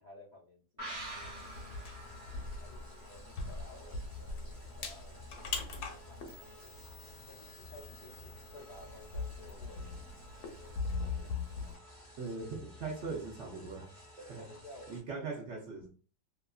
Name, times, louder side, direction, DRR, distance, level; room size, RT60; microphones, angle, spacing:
voice 1, 0.0-2.2 2.6-6.8 7.3-10.1 10.5-10.7 11.1-11.4 11.6-12.1 14.2-15.0, left 1 dB, 90° left, -6 dB, 0.3 m, -55 dB
sound 1, 0.8-4.2 4.5-4.6, right 1 dB, 30° right, 0.4 m, -47 dB
sound 2, 0.9-11.8, left 4 dB, 70° left, 1.0 m, -42 dB
sound 3, 1.1-15.0, left 1 dB, 15° left, 0.7 m, -54 dB
voice 2, 12.2-13.9 14.3-14.4 14.9-15.9, right 4 dB, 70° right, -2 dB, 0.6 m, -40 dB
2.8 x 2.5 x 2.3 m, 0.38 s
omnidirectional pair, 1.9 m